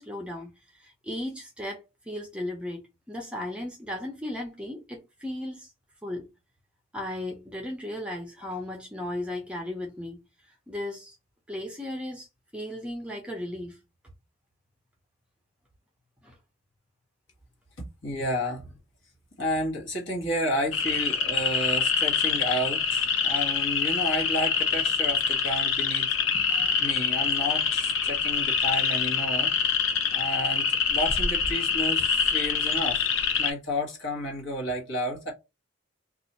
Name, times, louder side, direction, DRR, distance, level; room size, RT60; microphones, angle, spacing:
voice 1, 0.0-5.7 6.0-6.3 6.9-10.2 10.7-11.1 11.5-12.3 12.5-13.8 16.2-16.3 26.3-26.8, left 1 dB, 5° right, 0.6 m, -36 dB
voice 2, 18.0-18.6 19.4-26.1 26.8-29.5 30.1-33.1 33.4-35.3, equal, 60° left, 1.4 m, -31 dB
sound 1, 20.7-33.5, left 6 dB, 75° left, 0.7 m, -25 dB
2.6 x 2.4 x 4.1 m
head